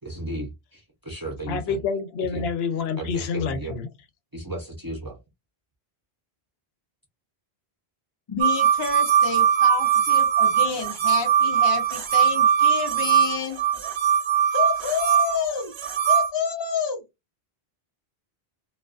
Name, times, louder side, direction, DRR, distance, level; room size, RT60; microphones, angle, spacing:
voice 1, 0.0-1.8 2.3-2.5 3.0-3.8 4.3-5.2, right 1 dB, 25° right, 0.5 m, -34 dB
voice 2, 1.5-3.9, left 5 dB, 80° left, 0.8 m, -28 dB
voice 3, 8.3-13.6 14.5-15.7 16.1-17.0, left 6 dB, 40° left, 0.4 m, -29 dB
sound 1, 8.4-16.3, right 8 dB, 85° right, 0.9 m, -20 dB
2.3 x 2.3 x 2.3 m
omnidirectional pair, 1.0 m